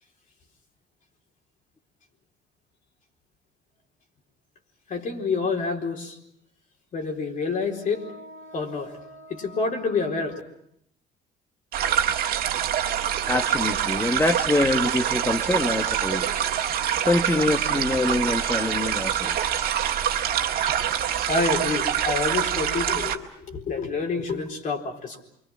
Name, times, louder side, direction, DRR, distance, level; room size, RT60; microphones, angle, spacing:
voice 1, 4.9-6.2 6.9-10.4 20.7-20.8 21.3-25.2, left 4 dB, 50° left, 2 dB, 4.2 m, -28 dB
sound 1, 11.7-23.2, right 9 dB, 65° right, 1.8 m, -25 dB
voice 2, 13.3-16.5 17.0-19.7, left 2 dB, 15° left, 5 dB, 1.3 m, -25 dB
29.0 x 23.5 x 6.0 m, 0.74 s
cardioid pair, 110°, 17 cm